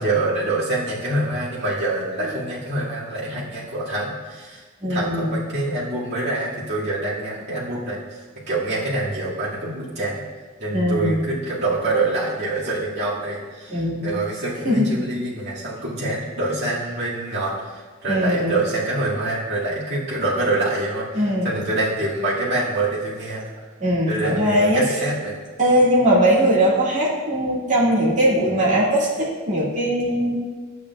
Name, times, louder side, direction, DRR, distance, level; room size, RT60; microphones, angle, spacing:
voice 1, 0.0-8.0 8.5-10.2 10.6-23.5 24.1-25.4, right 2 dB, 55° right, -8 dB, 2.1 m, -25 dB
voice 2, 4.8-5.3 10.7-11.3 13.7-14.2 14.6-14.9 18.1-18.6 21.2-21.5 23.8-24.8 25.6-30.4, equal, 40° right, -7 dB, 2.0 m, -20 dB
11.5 x 7.6 x 2.4 m, 1.4 s
head